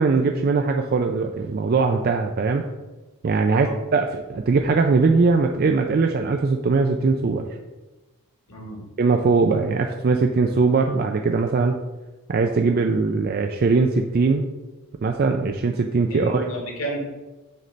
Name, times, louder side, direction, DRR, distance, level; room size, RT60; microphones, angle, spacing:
voice 1, 0.0-2.7 3.2-7.4 9.0-11.7 12.3-14.4 15.0-16.5, right 4 dB, 45° right, 4 dB, 0.3 m, -20 dB
voice 2, 8.5-8.8 16.1-17.0, right 1 dB, 65° left, 0 dB, 1.5 m, -32 dB
6.5 x 3.2 x 5.2 m, 1.1 s
head